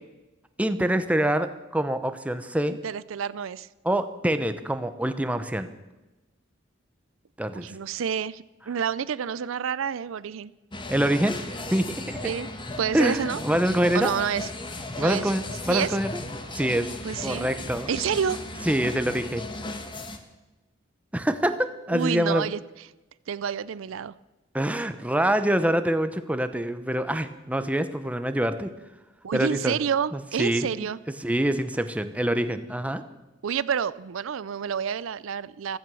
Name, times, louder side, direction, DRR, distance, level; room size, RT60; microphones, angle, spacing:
voice 1, 0.6-2.7 3.8-5.7 7.4-7.7 10.9-11.4 11.7-12.2 12.9-14.1 15.0-16.1 16.5-16.9 17.2-17.9 18.6-19.5 21.1-22.5 24.5-28.7 29.3-29.8 30.1-30.7 31.2-33.0, right 1 dB, 5° right, 10 dB, 0.8 m, -25 dB
voice 2, 2.7-3.7 7.5-10.5 12.2-12.5 12.8-13.4 13.9-14.5 15.0-15.3 15.7-16.0 17.0-17.5 17.9-18.4 21.9-22.6 23.3-24.1 29.2-31.0 33.4-35.8, right 7 dB, 75° right, 18 dB, 0.4 m, -29 dB
sound 1, 10.7-20.2, left 2 dB, 25° left, 1.4 m, -36 dB
15.5 x 14.0 x 6.2 m, 1.1 s
head